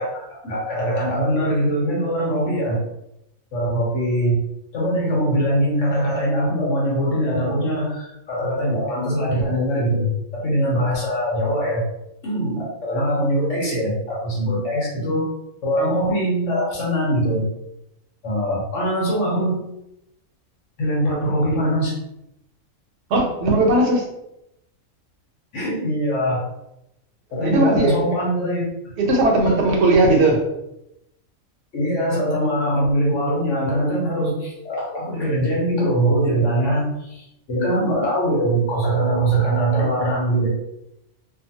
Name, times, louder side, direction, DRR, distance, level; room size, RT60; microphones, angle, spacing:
voice 1, 0.0-2.8 3.5-4.4 4.7-11.9 12.2-15.3 15.6-17.5 18.2-19.6 20.8-22.0 25.5-26.4 27.3-28.6 29.4-29.5 31.7-40.5, right 1 dB, 65° left, -4 dB, 1.2 m, -22 dB
voice 2, 23.1-24.1 27.4-28.0 29.0-30.4, right 2 dB, 60° right, 0 dB, 0.9 m, -17 dB
2.7 x 2.3 x 2.7 m, 0.84 s
omnidirectional pair, 1.4 m